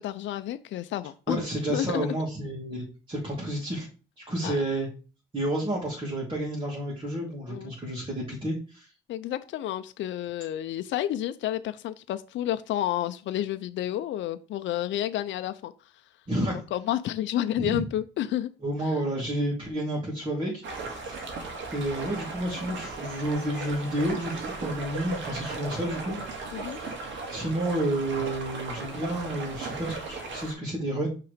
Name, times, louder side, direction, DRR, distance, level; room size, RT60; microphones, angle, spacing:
voice 1, 0.0-1.4 1.7-2.1 4.4-4.6 7.5-7.7 9.1-15.7 16.7-18.5 26.5-26.8, left 12 dB, 70° left, 0.5 m, -30 dB
voice 2, 1.3-3.9 4.2-4.9 5.3-8.9 16.3-16.6 17.6-17.8 18.6-20.6 20.9-21.2 21.7-26.2 27.3-31.1, right 1 dB, 25° right, 2.5 m, -30 dB
sound 1, 20.6-30.5, right 3 dB, 70° right, 2.0 m, -37 dB
5.8 x 3.8 x 5.0 m
cardioid pair, 90°, 20 cm